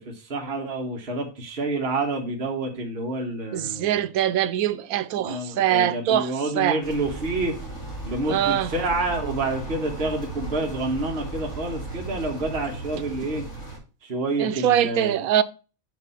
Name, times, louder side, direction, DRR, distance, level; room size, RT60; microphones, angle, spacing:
voice 1, 0.0-4.1 5.2-7.5 8.0-13.5 14.0-15.2, right 2 dB, 45° right, 1.6 m, -28 dB
voice 2, 3.5-6.8 8.3-8.7 14.4-15.4, right 11 dB, 85° right, 1.1 m, -23 dB
sound 1, 6.8-13.8, right 2 dB, 80° left, 4.2 m, -36 dB
8.2 x 4.3 x 5.5 m
omnidirectional pair, 1.5 m